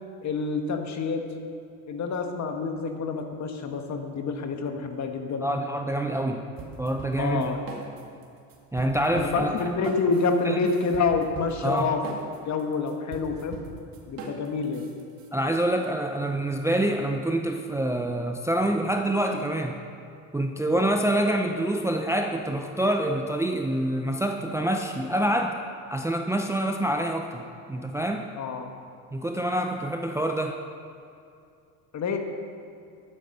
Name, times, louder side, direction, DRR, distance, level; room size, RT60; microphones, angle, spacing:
voice 1, 0.2-1.3 1.9-5.5 7.2-7.6 9.2-12.1 12.5-13.6 14.1-14.9 20.7-20.9 28.4-28.7 31.9-32.2, left 4 dB, 45° left, 5 dB, 1.4 m, -27 dB
voice 2, 5.4-6.4 6.8-7.5 8.7-9.5 10.4-10.6 11.6-11.9 15.3-19.8 20.3-25.6 25.9-28.3 29.1-30.6, right 1 dB, 5° right, 3 dB, 0.6 m, -26 dB
sound 1, 6.6-8.2 8.5-15.3, right 4 dB, 55° right, 2.1 m, -41 dB
12.0 x 9.3 x 5.4 m, 2.5 s
supercardioid pair, 100°, 40 cm